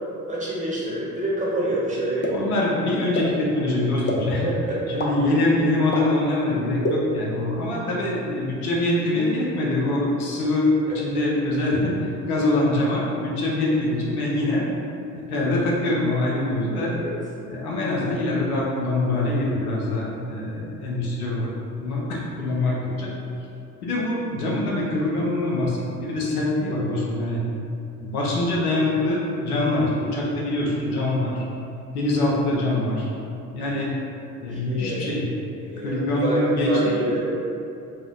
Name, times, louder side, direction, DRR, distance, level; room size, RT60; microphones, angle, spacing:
voice 1, 0.3-2.5 4.4-5.0 16.9-17.1 34.5-35.0 35.6-37.2, right 1 dB, 15° right, -7 dB, 1.0 m, -27 dB
sound 1, 2.2-2.3 3.1-3.2 4.1-4.2 5.0-5.1 5.9-6.0 6.8-6.9, left 2 dB, 25° left, 0.5 m, -24 dB
voice 2, 2.3-4.5 4.9-14.7 15.1-16.9 17.4-21.5 21.8-23.1 23.8-27.4 28.0-31.5 31.9-33.1 33.5-33.9 34.4-35.3 35.8-36.8, left 2 dB, 85° left, -4 dB, 0.6 m, -24 dB
2.6 x 2.1 x 3.6 m, 2.6 s
figure-of-eight pair, 55°, 43 cm